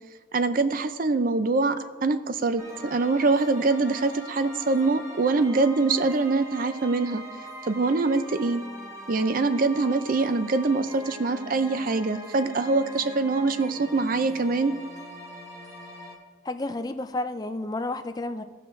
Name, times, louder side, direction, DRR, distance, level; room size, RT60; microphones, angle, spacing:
voice 1, 0.3-7.2 7.6-8.6 9.1-14.7, right 3 dB, 45° right, 11 dB, 0.4 m, -24 dB
sound 1, 2.6-16.2, equal, 15° right, 1.0 m, -42 dB
voice 2, 16.4-18.4, left 2 dB, 20° left, 9 dB, 0.4 m, -31 dB
16.5 x 5.7 x 3.1 m, 1.4 s
head